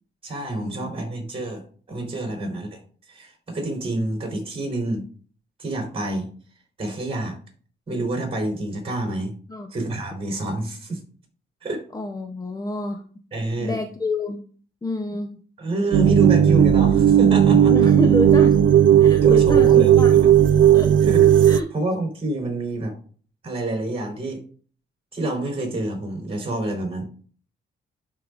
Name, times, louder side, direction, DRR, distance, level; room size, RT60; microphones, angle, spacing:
voice 1, 0.2-1.6 1.9-2.8 3.1-5.1 5.6-6.3 6.8-7.4 7.9-9.3 9.7-11.0 11.6-11.8 13.3-13.8 15.6-17.7 19.2-20.0 21.1-21.3 21.7-22.9 23.4-24.4 25.1-27.0, right 1 dB, 30° right, 2 dB, 3.8 m, -27 dB
voice 2, 11.9-13.0 13.6-14.4 14.8-15.3 17.7-18.6 19.0-20.1 20.7-20.9 21.4-21.7, left 2 dB, 20° left, 5 dB, 0.7 m, -28 dB
sound 1, 15.9-21.6, right 10 dB, 70° right, 0.5 m, -15 dB
11.5 x 4.7 x 2.5 m, 0.43 s
cardioid pair, 115°, 20 cm